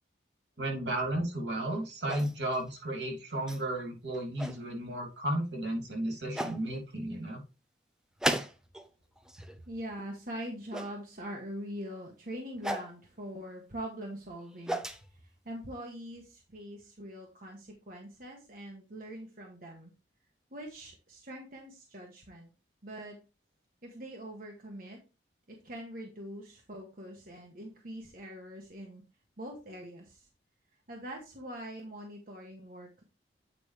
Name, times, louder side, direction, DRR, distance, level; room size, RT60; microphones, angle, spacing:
voice 1, 0.6-7.4, right 1 dB, 80° right, 1 dB, 3.0 m, -33 dB
sound 1, 2.1-2.6 3.5-3.6 4.1-4.6 5.6-5.7 6.3-6.6 8.2-8.9 9.2-9.6 10.7-10.9 12.6-12.9 14.3-15.0, right 1 dB, 5° right, 0.6 m, -34 dB
voice 2, 9.5-14.8 15.1-19.9 20.5-22.5 22.8-23.2 23.8-25.0 25.5-29.0 29.4-30.3 30.9-33.0, equal, 50° right, 0 dB, 1.3 m, -43 dB
8.6 x 5.1 x 3.4 m, 0.30 s
head